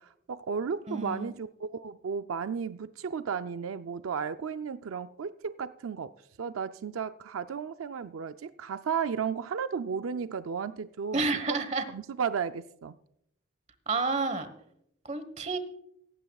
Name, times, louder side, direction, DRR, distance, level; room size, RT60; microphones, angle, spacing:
voice 1, 0.0-6.1 6.4-11.2 11.9-13.0, right 6 dB, 80° right, 10 dB, 0.4 m, -34 dB
voice 2, 0.9-1.3 11.1-11.8 13.9-14.5 15.0-15.6, right 3 dB, 35° right, 10 dB, 1.2 m, -30 dB
17.5 x 15.5 x 2.3 m, 0.75 s
head